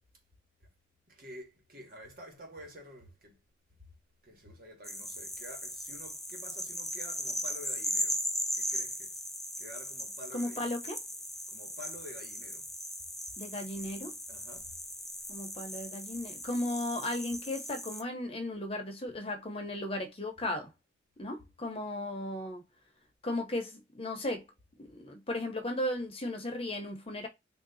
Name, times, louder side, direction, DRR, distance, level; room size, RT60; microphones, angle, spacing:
voice 1, 1.1-3.4 4.2-8.2 8.5-9.2 9.6-10.7 11.5-12.7 14.3-14.7 15.1-15.4, equal, 50° right, 1.4 m, -49 dB
sound 1, 4.8-18.0, equal, ahead, 0.4 m, -38 dB
voice 2, 10.3-11.0 13.4-14.2 15.3-20.7 21.2-22.6 23.2-24.4 24.8-27.3, left 1 dB, 30° left, 0.8 m, -35 dB
3.4 x 2.7 x 4.0 m
head